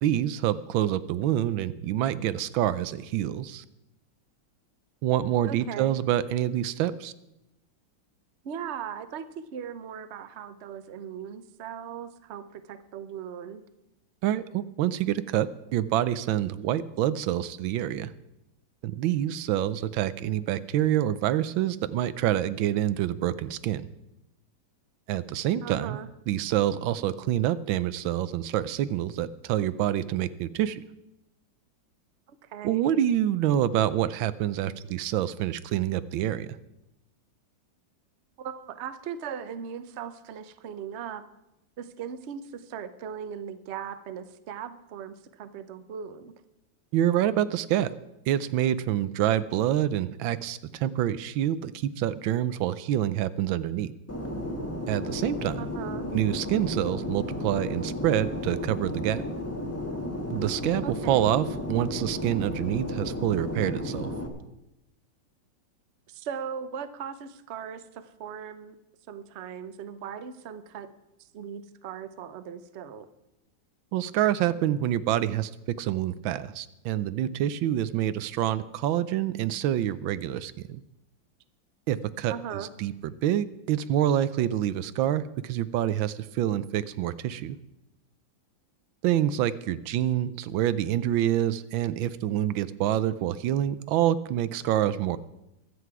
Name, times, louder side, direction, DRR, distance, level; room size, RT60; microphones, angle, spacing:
voice 1, 0.0-3.6 5.0-7.1 14.2-18.1 18.8-23.8 25.1-26.0 26.3-30.8 32.6-36.5 46.9-47.9 48.3-53.9 54.9-55.7 56.1-59.2 60.3-64.1 73.9-75.5 75.8-80.8 81.9-87.6 89.0-95.2, right 12 dB, 90° right, 15 dB, 1.4 m, -27 dB
voice 2, 5.5-6.0 8.4-13.6 25.6-26.1 32.5-32.9 38.4-41.2 41.8-46.3 55.6-56.1 60.8-61.3 66.1-68.7 69.1-70.9 71.3-73.1 82.3-82.7, right 7 dB, 50° right, 11 dB, 0.8 m, -38 dB
Fixed-wing aircraft airplane, 54.1-64.3, left 1 dB, 10° left, 1.2 m, -33 dB
22.5 x 7.9 x 4.7 m, 0.90 s
omnidirectional pair, 2.1 m